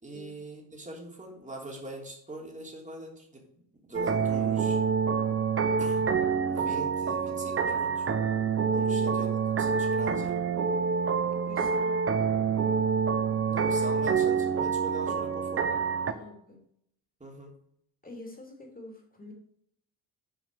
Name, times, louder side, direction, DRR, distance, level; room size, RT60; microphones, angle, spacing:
voice 1, 0.0-3.4 3.8-4.8 5.8-6.1 6.5-8.1 8.7-10.4 13.4-15.7 17.2-17.6, right 1 dB, 20° right, 0 dB, 3.1 m, -42 dB
sound 1, 3.9-16.1, right 6 dB, 35° right, 0.9 m, -27 dB
voice 2, 8.8-9.2 11.3-12.0 16.1-16.6 18.0-19.3, left 2 dB, 20° left, 1 dB, 3.2 m, -46 dB
7.4 x 5.1 x 6.3 m, 0.70 s
cardioid pair, 70°, 38 cm